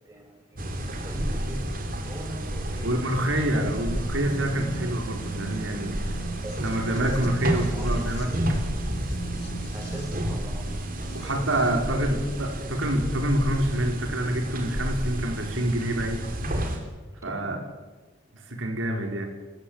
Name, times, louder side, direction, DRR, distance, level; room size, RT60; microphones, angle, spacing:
voice 1, 0.1-0.8 1.0-3.8 6.4-8.1 9.7-12.3 17.3-17.7, right 1 dB, 15° right, 1 dB, 6.3 m, -40 dB
sound 1, 0.6-11.7, right 1 dB, 60° left, 3.3 m, -39 dB
sound 2, 0.6-16.8, right 1 dB, 45° right, 3.7 m, -31 dB
voice 2, 2.8-6.2 6.6-8.3 11.1-16.3 17.2-17.6 18.5-19.3, right 1 dB, 85° right, 3 dB, 5.0 m, -27 dB
26.5 x 14.5 x 8.9 m, 1.2 s
head